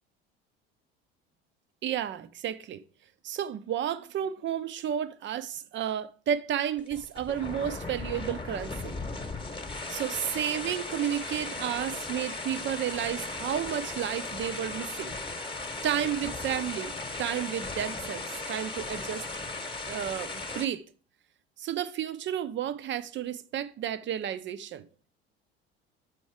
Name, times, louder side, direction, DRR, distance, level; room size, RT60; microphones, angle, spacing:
voice 1, 1.8-2.8 3.2-8.9 9.9-15.1 15.8-16.9 17.2-19.2 19.5-20.8 21.6-24.9, right 10 dB, 40° right, 0.6 m, -32 dB
sound 1, 6.8-20.6, left 3 dB, 15° left, 1.1 m, -37 dB
7.0 x 4.4 x 4.7 m
hypercardioid pair, 65°, 30 cm